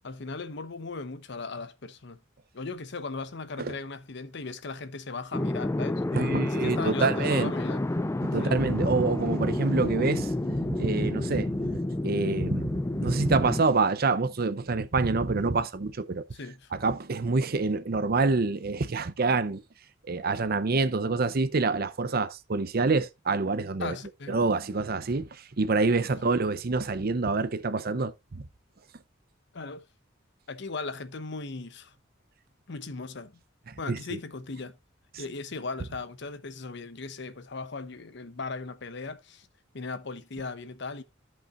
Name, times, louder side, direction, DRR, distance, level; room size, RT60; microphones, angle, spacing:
voice 1, 0.0-2.2 2.5-7.8 8.4-8.6 16.3-16.7 23.8-24.4 26.2-26.3 29.5-29.9 30.5-31.9 32.7-33.4 33.8-34.8 35.2-39.5 39.7-41.0, left 3 dB, 65° left, 0.9 m, -38 dB
sound 1, 5.3-13.6, left 1 dB, 15° left, 0.4 m, -29 dB
voice 2, 6.1-7.5 8.2-16.2 16.7-19.6 20.1-24.0 24.3-28.4 33.7-34.2, right 3 dB, 55° right, 0.7 m, -27 dB
14.5 x 5.5 x 2.5 m
head